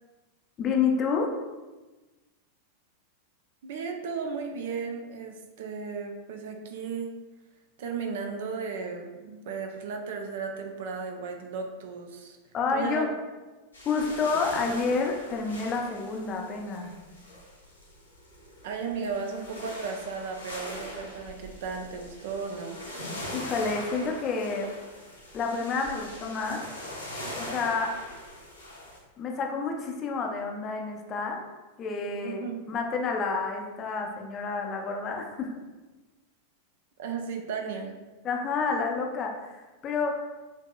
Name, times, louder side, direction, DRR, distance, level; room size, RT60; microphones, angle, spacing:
voice 1, 0.6-1.3 12.5-13.1 13.8-16.9 23.3-24.7 25.3-26.6 27.3-28.0 29.2-31.4 31.8-35.5 38.2-40.2, left 4 dB, 30° left, 2 dB, 0.5 m, -29 dB
voice 2, 3.6-7.2 7.8-12.4 12.7-13.1 18.6-22.8 32.2-32.6 37.0-38.0, right 5 dB, 55° right, 4 dB, 0.5 m, -35 dB
sound 1, 13.7-29.0, left 1 dB, 80° left, 1.0 m, -41 dB
5.9 x 2.7 x 2.2 m, 1.2 s
figure-of-eight pair, 90°, 0 cm